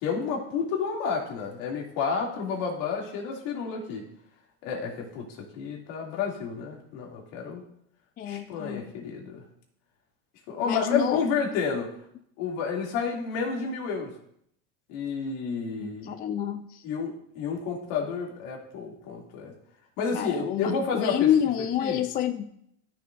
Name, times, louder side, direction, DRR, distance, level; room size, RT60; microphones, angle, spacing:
voice 1, 0.0-4.0 4.6-7.6 8.2-9.4 10.5-11.9 12.4-14.1 14.9-16.1 16.8-19.5 20.0-21.3 21.8-22.0, left 5 dB, 60° left, -1 dB, 2.7 m, -30 dB
voice 2, 8.2-8.8 10.6-11.2 15.8-16.8 20.1-22.4, left 10 dB, 25° left, 10 dB, 0.4 m, -28 dB
13.5 x 6.7 x 2.6 m, 0.72 s
hypercardioid pair, 110°, 39 cm